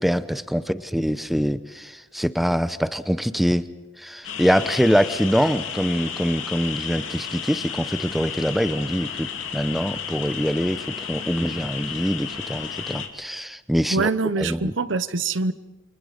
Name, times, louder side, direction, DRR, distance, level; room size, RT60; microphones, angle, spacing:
voice 1, 0.0-3.7 4.0-14.1 14.4-14.7, equal, ahead, 13 dB, 0.7 m, -24 dB
sound 1, 4.2-13.1, left 7 dB, 85° left, 2.6 m, -33 dB
voice 2, 13.9-15.5, right 3 dB, 70° right, 14 dB, 0.9 m, -24 dB
28.5 x 26.0 x 5.1 m, 1.1 s
head